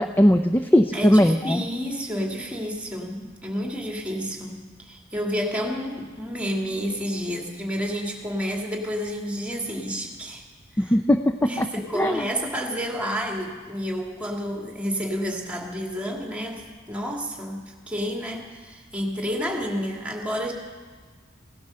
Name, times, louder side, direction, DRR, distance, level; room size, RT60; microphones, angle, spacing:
voice 1, 0.0-1.6 10.8-11.7 11.9-12.3, equal, 10° left, 8 dB, 0.4 m, -19 dB
voice 2, 0.9-10.4 10.8-10.9 11.4-20.5, equal, 5° right, 1 dB, 2.0 m, -30 dB
17.0 x 12.0 x 6.6 m, 1.4 s
head